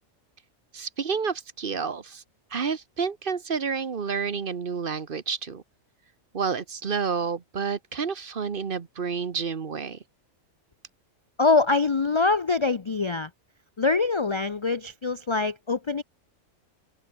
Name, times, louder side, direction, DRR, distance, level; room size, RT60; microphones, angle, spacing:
voice 1, 0.7-2.2 2.5-5.6 6.3-10.0, right 5 dB, 45° right, 1.1 m, -29 dB
voice 2, 11.4-13.3 13.8-16.0, left 3 dB, 40° left, 0.4 m, -24 dB
open air
omnidirectional pair, 1.4 m